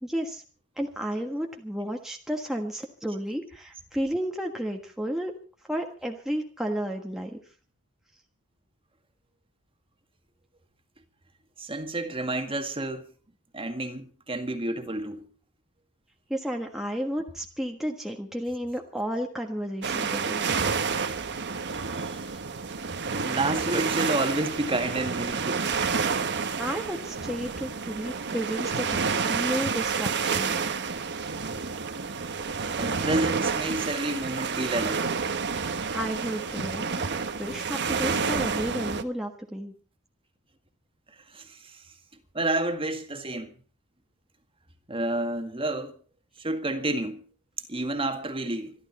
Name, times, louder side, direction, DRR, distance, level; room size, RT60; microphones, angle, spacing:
voice 1, 0.0-0.4 0.8-5.3 5.6-7.4 16.3-20.4 26.6-30.5 35.9-37.1 37.4-39.7, equal, ahead, 1.5 m, -32 dB
voice 2, 11.6-13.0 13.5-15.2 21.9-22.2 23.2-25.7 32.8-35.1 38.0-38.1 41.3-41.4 42.3-43.5 44.9-45.9 46.4-47.2 47.7-48.7, right 2 dB, 25° right, 1.9 m, -29 dB
sound 1, 19.8-39.0, right 5 dB, 50° right, 1.4 m, -29 dB
26.0 x 12.0 x 4.3 m
head